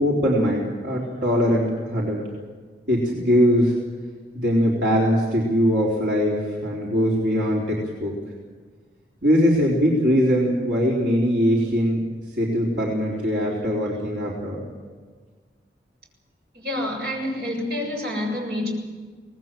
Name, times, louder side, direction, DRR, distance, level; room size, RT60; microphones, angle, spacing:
voice 1, 0.0-2.3 2.9-3.8 4.3-8.2 9.2-12.0 12.3-14.7, equal, 90° right, -4 dB, 4.0 m, -21 dB
voice 2, 16.5-18.7, left 1 dB, 70° right, 0 dB, 7.2 m, -28 dB
25.0 x 19.5 x 7.6 m, 1.5 s
head